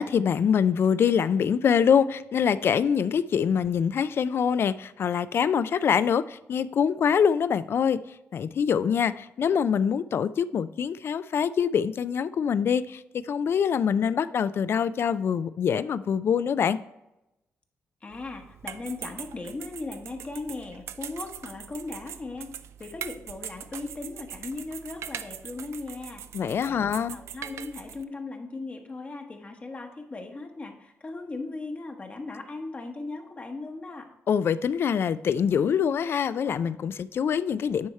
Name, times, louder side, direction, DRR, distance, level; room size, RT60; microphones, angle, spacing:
voice 1, 0.0-8.0 8.3-16.8 26.3-27.2 34.3-37.9, left 7 dB, 55° left, 16 dB, 0.3 m, -24 dB
voice 2, 18.0-22.5 22.8-26.2 26.7-26.8 27.1-34.1, left 3 dB, 30° left, 3 dB, 1.0 m, -38 dB
sound 1, 18.1-28.0, right 9 dB, 75° right, 0.3 m, -42 dB
9.4 x 3.5 x 4.3 m, 0.91 s
cardioid pair, 90°, 5 cm